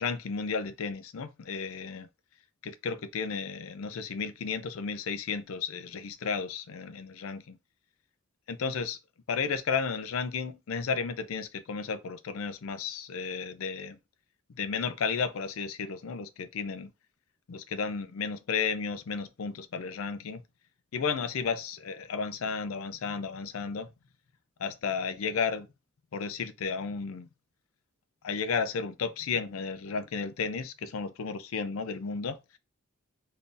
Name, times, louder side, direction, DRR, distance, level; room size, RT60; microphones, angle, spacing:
voice 1, 0.0-2.1 2.6-7.6 8.5-9.0 9.3-14.0 14.6-16.9 17.5-20.4 20.9-23.9 24.6-25.7 26.1-27.3 28.2-32.6, left 5 dB, 75° left, 0.4 m, -33 dB
3.7 x 2.7 x 2.5 m
head